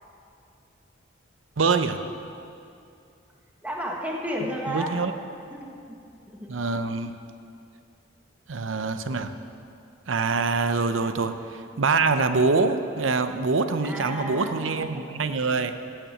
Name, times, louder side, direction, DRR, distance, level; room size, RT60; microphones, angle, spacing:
voice 1, 1.6-2.0 4.7-5.1 6.5-7.1 8.5-9.3 10.1-11.3 11.8-15.7, right 4 dB, 80° right, 9 dB, 0.7 m, -24 dB
voice 2, 3.6-4.9 5.5-6.0 6.3-6.5 11.0-11.1 13.8-15.2, equal, 5° right, -1 dB, 1.3 m, -33 dB
15.0 x 6.0 x 8.8 m, 2.6 s
head